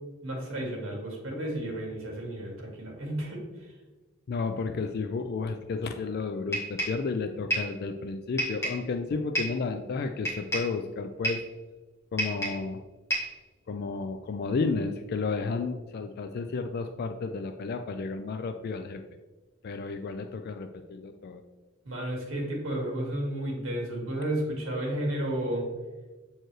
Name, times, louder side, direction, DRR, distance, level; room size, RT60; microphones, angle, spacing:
voice 1, 0.2-3.7 21.9-25.7, right 1 dB, 75° right, -1 dB, 1.9 m, -32 dB
voice 2, 4.3-11.4 12.1-12.8 13.7-19.0 19.6-21.4, left 4 dB, 50° left, 7 dB, 0.3 m, -32 dB
sound 1, 6.5-7.0 7.5-7.8 8.4-8.9 9.4-9.6 10.3-10.8 11.2-11.5 12.2-12.7 13.1-13.4, right 1 dB, 15° left, 1.9 m, -30 dB
7.6 x 4.5 x 3.1 m, 1.2 s
head